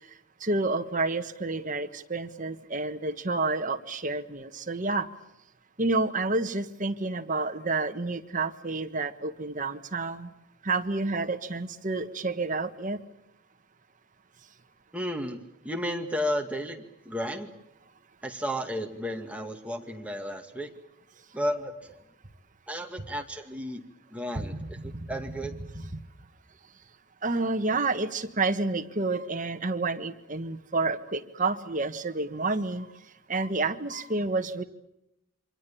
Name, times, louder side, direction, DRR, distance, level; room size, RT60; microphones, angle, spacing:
voice 1, 0.4-5.1 5.8-10.3 10.6-13.0 24.3-25.1 25.7-26.0 27.2-32.9 33.3-34.6, right 3 dB, 40° right, 8 dB, 1.5 m, -29 dB
voice 2, 14.9-15.4 15.6-17.5 18.2-20.7 21.3-21.9 22.7-23.8 24.1-25.6, equal, 5° right, 3 dB, 2.1 m, -33 dB
28.0 x 25.5 x 7.1 m, 0.84 s
head